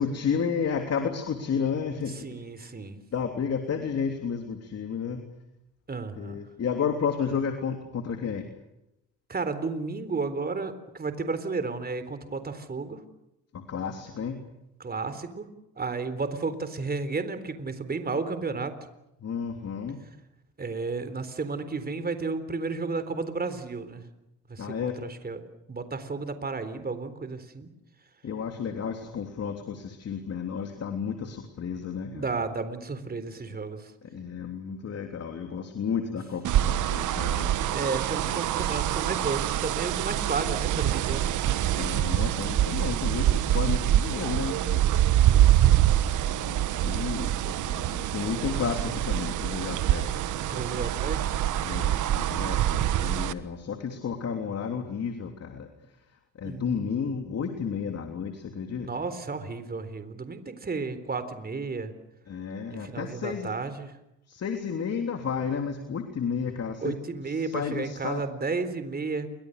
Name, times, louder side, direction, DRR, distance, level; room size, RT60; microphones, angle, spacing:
voice 1, 0.0-2.7 3.1-5.2 6.1-8.5 13.5-14.4 19.2-20.0 24.6-25.0 28.2-32.3 34.0-37.5 41.7-45.0 46.4-50.5 51.6-55.7 56.4-58.9 62.3-63.5 64.3-67.0 67.3-68.2, left 6 dB, 55° left, 5 dB, 3.3 m, -32 dB
voice 2, 2.2-3.0 5.9-6.4 9.3-13.0 14.8-15.5 15.8-18.7 20.6-24.0 24.5-25.4 25.7-27.7 32.1-33.9 37.7-41.7 45.2-45.8 50.5-52.2 56.4-56.9 58.8-61.9 62.7-63.9 66.8-69.3, right 4 dB, 30° right, 11 dB, 3.8 m, -33 dB
sound 1, 36.4-53.3, right 12 dB, 80° right, 1.4 m, -25 dB
29.0 x 24.5 x 6.7 m, 0.86 s
cardioid pair, 90°, 30 cm